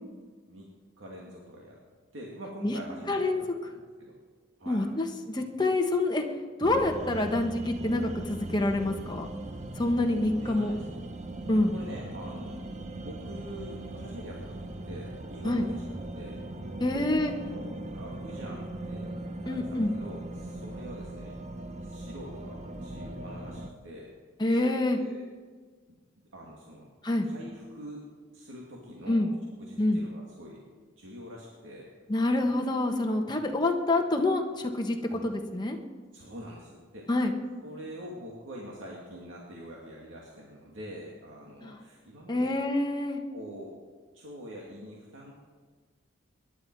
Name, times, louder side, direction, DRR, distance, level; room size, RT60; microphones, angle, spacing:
voice 1, 1.0-1.8 2.1-4.2 4.6-4.8 10.3-11.0 11.7-12.6 13.0-15.8 16.1-16.4 16.9-19.1 19.5-21.3 21.8-24.1 24.9-25.3 26.3-26.9 27.2-28.0 28.3-29.2 29.6-30.6 31.0-31.9 35.1-35.3 36.1-37.1 37.6-42.6 43.3-43.7 44.1-45.4, equal, 75° right, -3 dB, 2.3 m, -45 dB
voice 2, 3.1-3.4 4.7-6.2 6.6-9.3 9.8-10.7 11.5-11.7 15.4-15.7 16.8-17.3 19.5-19.9 24.4-25.0 27.0-27.3 29.1-29.3 29.8-30.0 32.1-35.8 37.1-37.3 41.6-41.7 42.3-43.2, left 2 dB, 20° left, 3 dB, 1.4 m, -27 dB
sound 1, 6.6-23.7, right 2 dB, 35° right, 1.0 m, -39 dB
23.0 x 11.0 x 4.7 m, 1.5 s
head